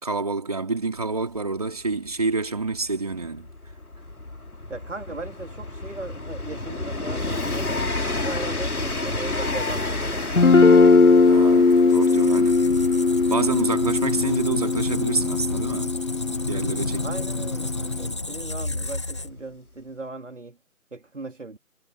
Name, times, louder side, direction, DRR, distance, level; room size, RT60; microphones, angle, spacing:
voice 1, 0.0-3.5 11.2-12.7 13.3-16.0 16.3-17.0 17.4-17.5, right 3 dB, 25° right, 3.2 m, -28 dB
Train, 1.0-1.1 1.3-17.9 18.9-19.0, left 2 dB, 80° left, 4.0 m, -32 dB
voice 2, 4.7-10.9 16.9-20.6 20.9-21.6, right 3 dB, 55° right, 3.6 m, -38 dB
Guitar, 10.4-18.0, left 4 dB, 60° left, 1.3 m, -19 dB
Squeak, 11.7-19.6, left 2 dB, 20° left, 2.1 m, -31 dB
figure-of-eight pair, 175°, 43 cm